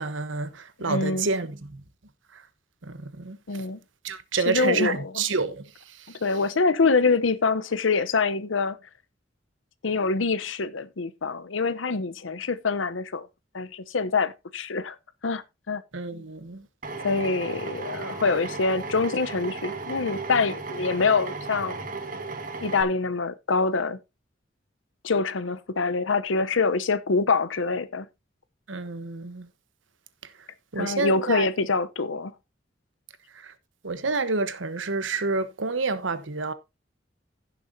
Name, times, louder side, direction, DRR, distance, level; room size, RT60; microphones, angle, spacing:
voice 1, 0.0-1.7 2.8-3.4 4.0-5.6 15.9-16.6 28.7-29.5 30.7-31.5 33.4-33.5 33.8-36.5, right 4 dB, 90° right, 1.1 m, -28 dB
voice 2, 0.8-1.3 3.5-3.8 4.5-5.2 6.2-8.8 9.8-13.3 13.5-15.0 15.2-15.8 17.0-21.8 22.6-24.0 25.0-28.1 30.8-32.3, left 4 dB, 90° left, 0.8 m, -25 dB
Drill, 16.8-22.8, right 3 dB, 45° right, 1.6 m, -35 dB
16.5 x 6.9 x 2.7 m
head